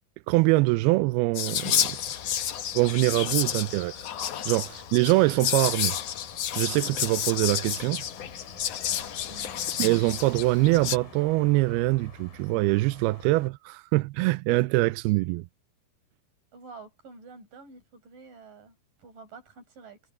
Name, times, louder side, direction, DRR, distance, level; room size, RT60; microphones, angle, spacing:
voice 1, 0.3-2.0 2.7-3.9 4.5-5.9 6.6-8.0 9.8-15.5, right 21 dB, 85° right, 2.3 m, -24 dB
Whispering, 1.3-11.0, left 10 dB, 80° left, 1.4 m, -30 dB
sound 1, 1.8-13.5, left 5 dB, 55° left, 6.1 m, -48 dB
voice 2, 9.3-9.9 16.5-20.0, right 4 dB, 50° right, 8.3 m, -48 dB
omnidirectional pair, 4.8 m